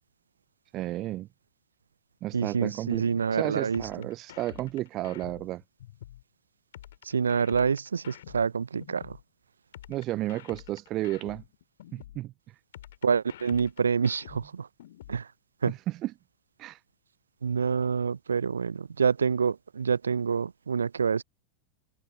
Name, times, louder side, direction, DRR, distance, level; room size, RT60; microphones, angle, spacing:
voice 1, 0.7-1.3 2.2-5.6 9.9-11.4 11.9-12.3 15.6-16.1 16.6-16.8, right 16 dB, 35° right, 0.6 m, -32 dB
voice 2, 2.3-3.8 7.0-9.2 13.0-14.7 15.1-15.3 15.6-15.7 17.4-21.2, right 6 dB, 70° right, 0.9 m, -27 dB
sound 1, 3.7-6.2 6.7-9.2 9.7-12.2 12.7-15.2, left 12 dB, 60° left, 3.3 m, -48 dB
figure-of-eight pair, 90°, 0 cm